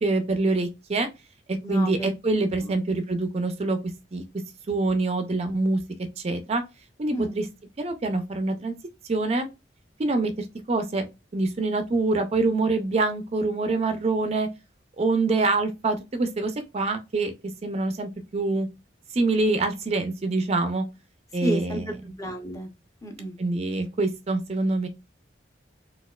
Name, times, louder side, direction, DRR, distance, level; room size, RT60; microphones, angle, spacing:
voice 1, 0.0-1.1 1.5-3.8 4.1-4.2 4.7-5.8 6.2-6.6 7.0-7.5 7.8-8.7 9.0-9.5 10.0-10.3 10.7-11.1 11.3-14.5 15.0-17.3 17.6-18.7 19.1-20.8 21.3-22.0 23.4-24.9, right 3 dB, 35° right, 0.4 m, -25 dB
voice 2, 1.6-2.1 2.6-2.8 7.1-7.4 21.4-22.7 23.0-23.4, right 1 dB, 20° left, 0.7 m, -31 dB
4.2 x 2.3 x 2.3 m
head